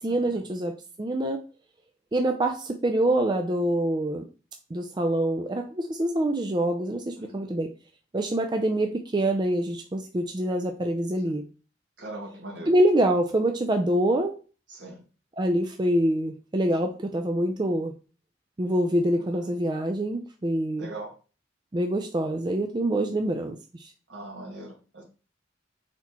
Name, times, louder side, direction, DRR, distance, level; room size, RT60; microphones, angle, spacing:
voice 1, 0.0-1.4 2.1-4.2 4.7-7.7 8.1-11.4 12.7-14.4 15.3-17.9 18.6-20.9 21.7-23.9, right 1 dB, 25° right, 5 dB, 0.4 m, -25 dB
voice 2, 7.2-7.5 12.0-12.7 14.7-15.0 19.2-19.3 20.8-21.2 24.1-25.0, right 2 dB, 75° right, -1 dB, 1.8 m, -40 dB
4.1 x 4.1 x 2.9 m, 0.35 s
head